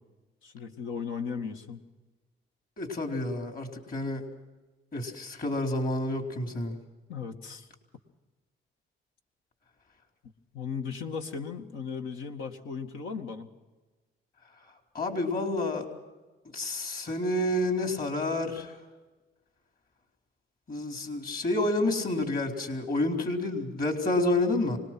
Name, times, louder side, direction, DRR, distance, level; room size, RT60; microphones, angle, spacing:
voice 1, 0.4-1.8 7.1-7.7 10.5-13.5, left 6 dB, 85° left, 4 dB, 2.1 m, -36 dB
voice 2, 2.8-4.3 4.9-6.8 14.9-15.9 16.5-18.7 20.7-24.8, left 2 dB, 45° left, 3 dB, 4.2 m, -29 dB
25.5 x 20.0 x 6.1 m, 1.2 s
cardioid pair, 90°, 20 cm